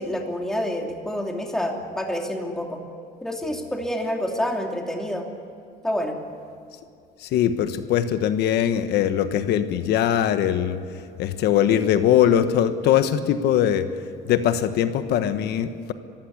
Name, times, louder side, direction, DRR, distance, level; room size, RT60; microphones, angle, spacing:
voice 1, 0.0-2.8 3.2-5.3 5.8-6.1, equal, 5° left, 1 dB, 2.8 m, -28 dB
voice 2, 7.2-10.8 11.2-13.9 14.2-15.9, left 10 dB, 75° left, 10 dB, 1.3 m, -21 dB
24.0 x 15.5 x 9.9 m, 2.4 s
cardioid pair, 110°, 17 cm